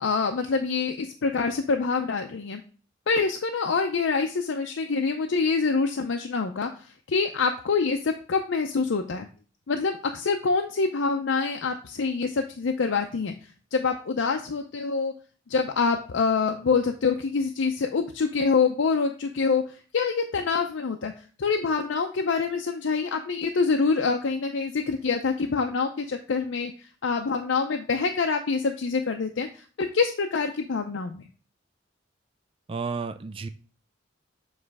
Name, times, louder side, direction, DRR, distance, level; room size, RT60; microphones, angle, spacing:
voice 1, 0.0-2.6 3.1-6.7 7.1-9.3 9.7-13.3 13.7-15.1 15.5-19.6 19.9-21.1 21.4-26.7 27.0-31.2, left 4 dB, 80° left, 4 dB, 0.5 m, -26 dB
voice 2, 32.7-33.5, right 5 dB, 30° right, 11 dB, 0.3 m, -32 dB
7.2 x 3.2 x 4.6 m, 0.40 s
head